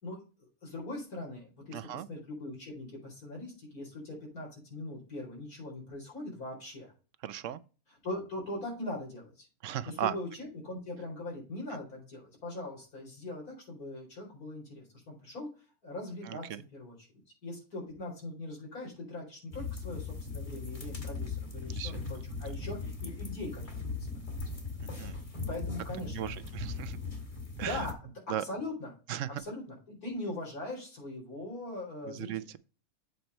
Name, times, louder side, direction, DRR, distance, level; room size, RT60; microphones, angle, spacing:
voice 1, 0.0-6.9 7.9-9.5 9.9-15.5 15.8-16.5 16.7-17.1 17.4-24.1 25.0-25.1 25.5-26.5 27.4-28.9 29.4-32.5, left 2 dB, 85° left, 4.8 m, -41 dB
voice 2, 1.7-2.1 7.2-7.6 9.6-10.1 16.3-16.4 21.7-21.9 25.0-25.1 26.1-27.0 27.6-27.8 28.3-28.4 29.1-29.4 32.1-32.6, right 11 dB, 65° right, 0.9 m, -36 dB
sound 1, 19.5-27.9, left 4 dB, 35° left, 2.1 m, -39 dB
8.0 x 4.4 x 5.2 m
omnidirectional pair, 1.5 m